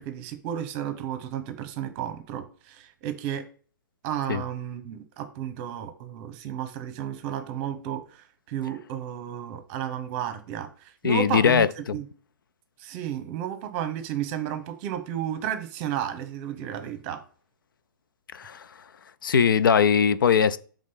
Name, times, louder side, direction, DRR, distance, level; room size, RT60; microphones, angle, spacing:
voice 1, 0.0-3.4 4.0-12.0 12.8-17.2, right 10 dB, 30° right, 1.0 m, -33 dB
voice 2, 11.0-11.7 18.3-18.7 19.2-20.6, left 7 dB, 70° left, 0.6 m, -20 dB
5.2 x 3.7 x 5.6 m
hypercardioid pair, 140°, 11 cm